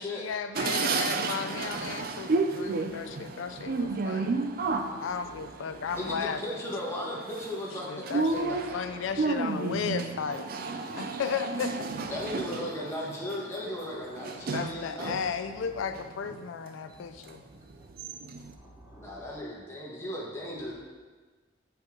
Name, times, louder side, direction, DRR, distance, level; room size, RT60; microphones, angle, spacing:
voice 1, 0.0-4.4 5.0-6.4 7.9-10.5 10.9-11.7 14.5-17.4, left 6 dB, 90° left, 9 dB, 0.4 m, -34 dB
sound 1, 0.6-15.3 15.8-16.7 17.3-17.4 17.7-18.5, right 3 dB, 50° right, 0.4 m, -32 dB
voice 2, 3.5-3.9 4.3-4.8 5.3-5.5 5.7-6.2 8.2-9.3 12.1-12.4 14.6-14.8 15.2-15.9 16.9-17.0 17.5-17.9 18.4-19.3 20.6-20.7, equal, 15° right, -3 dB, 0.9 m, -53 dB
voice 3, 5.9-7.9 12.1-15.2 19.0-20.7, left 1 dB, 15° left, -5 dB, 1.3 m, -36 dB
7.8 x 4.5 x 3.7 m, 1.4 s
head